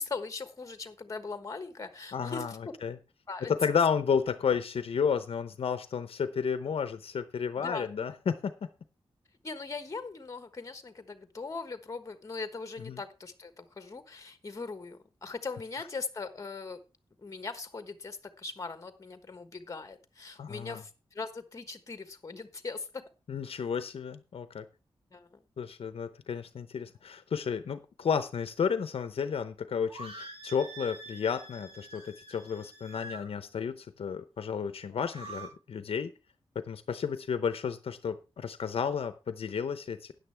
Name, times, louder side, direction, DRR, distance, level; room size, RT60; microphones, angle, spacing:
voice 1, 0.0-2.6 3.3-3.5 7.6-7.9 9.4-16.8 17.2-23.0 25.1-25.4, left 4 dB, 30° left, 10 dB, 1.2 m, -40 dB
voice 2, 2.1-3.0 3.5-8.5 12.8-13.0 20.4-20.8 23.3-24.7 25.6-36.1 36.5-40.1, left 6 dB, 70° left, 11 dB, 0.8 m, -32 dB
sound 1, 29.9-33.3 34.9-35.5, right 2 dB, 70° right, 7.7 m, -46 dB
13.0 x 9.6 x 3.4 m, 0.29 s
wide cardioid pair, 145°, 10 cm